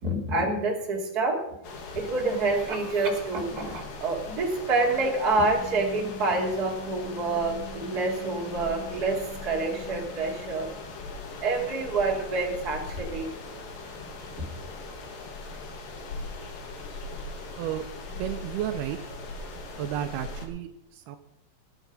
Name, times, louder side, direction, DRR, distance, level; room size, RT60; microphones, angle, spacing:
voice 1, 0.0-1.5 1.9-10.7 11.4-13.4, right 3 dB, 25° right, -1 dB, 2.8 m, -27 dB
sound 1, 1.6-20.5, left 3 dB, 65° left, 3.6 m, -40 dB
voice 2, 18.2-19.0 19.8-21.2, right 11 dB, 80° right, 7 dB, 2.7 m, -32 dB
20.0 x 8.3 x 5.4 m, 0.79 s
omnidirectional pair, 4.6 m